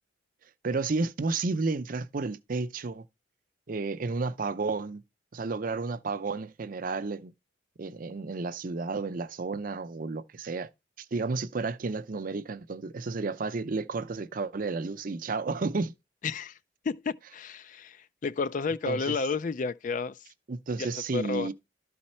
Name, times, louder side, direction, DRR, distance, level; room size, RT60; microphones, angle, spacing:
voice 1, 0.6-3.1 3.7-5.0 5.3-7.3 7.8-10.7 11.0-15.9 18.9-19.2 20.5-21.5, right 3 dB, 45° right, 0.5 m, -32 dB
voice 2, 16.2-16.6 16.8-20.2 20.8-21.5, left 4 dB, 45° left, 0.4 m, -31 dB
12.5 x 4.2 x 4.3 m
head